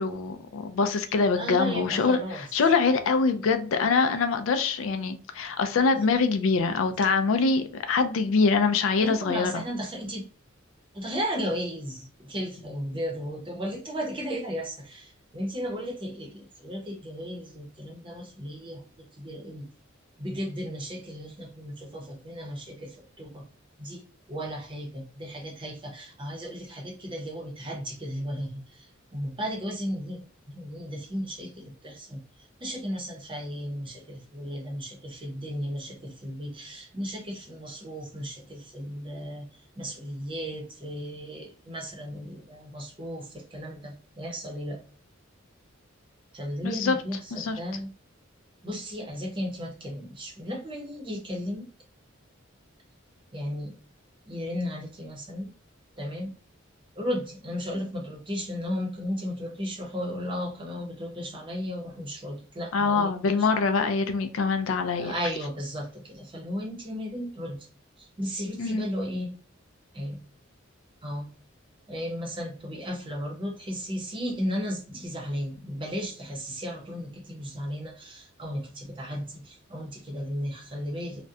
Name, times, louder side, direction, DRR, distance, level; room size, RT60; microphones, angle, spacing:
voice 1, 0.0-9.6 46.6-47.0 47.3-47.6 62.7-65.1 68.6-68.9, left 4 dB, 70° left, 0.4 m, -24 dB
voice 2, 1.4-2.4 8.8-10.2 10.9-19.7 20.2-23.4 23.8-24.0 24.3-28.9 29.1-30.2 30.5-32.2 32.6-39.5 39.8-44.8 46.3-47.9 48.6-51.7 53.3-53.7 54.3-55.5 56.0-56.3 57.0-63.4 64.9-67.6 68.0-69.3 69.9-70.2 71.0-71.3 71.9-81.3, equal, 25° right, 0.7 m, -35 dB
2.4 x 2.1 x 2.6 m
head